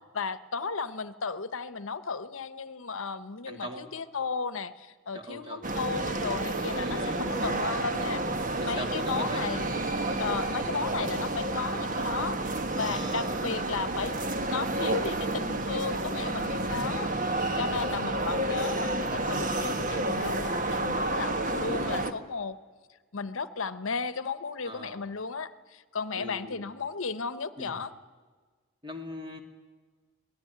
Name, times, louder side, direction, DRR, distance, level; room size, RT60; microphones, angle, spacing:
voice 1, 0.1-8.2 8.6-9.7 10.2-14.1 14.4-22.6 23.1-27.9, left 4 dB, 75° left, 14 dB, 0.9 m, -34 dB
voice 2, 3.5-3.9 5.1-5.6 6.8-7.2 8.6-9.7 11.7-11.9 12.7-13.5 17.4-18.0 24.6-25.0 26.2-26.6 27.6-27.8 28.8-29.4, equal, 25° right, 3 dB, 2.5 m, -41 dB
sound 1, 5.6-22.1, right 2 dB, 40° right, 1.3 m, -30 dB
25.5 x 18.5 x 9.5 m, 1.5 s
head